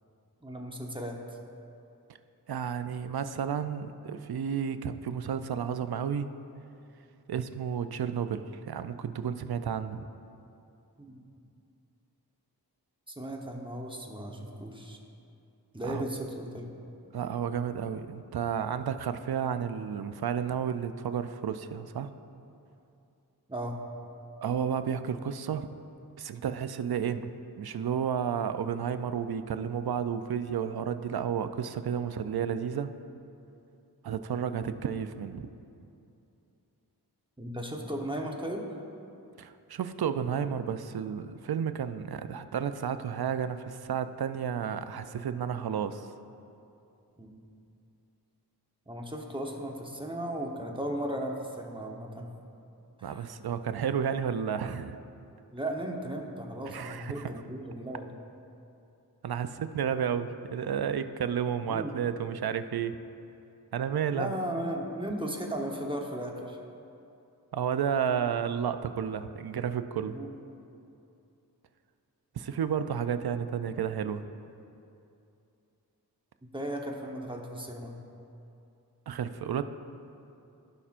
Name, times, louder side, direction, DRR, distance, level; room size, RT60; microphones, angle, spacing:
voice 1, 0.4-1.4 11.0-11.2 13.1-15.0 15.7-16.7 23.5-23.8 37.4-38.6 47.2-47.3 48.9-52.3 53.0-53.3 55.5-58.1 61.7-61.9 64.1-66.6 70.1-70.3 76.5-77.9, right 1 dB, 15° right, 0 dB, 1.0 m, -36 dB
voice 2, 2.5-6.3 7.3-10.1 15.8-16.0 17.1-22.1 24.4-25.7 26.2-27.3 27.6-32.9 34.0-35.5 39.4-46.1 53.0-55.0 56.7-57.3 59.2-63.0 63.7-64.3 67.5-70.2 72.3-74.2 79.1-79.6, right 8 dB, 70° right, 11 dB, 0.5 m, -32 dB
16.0 x 5.6 x 2.5 m, 2.7 s
wide cardioid pair, 50°, 39 cm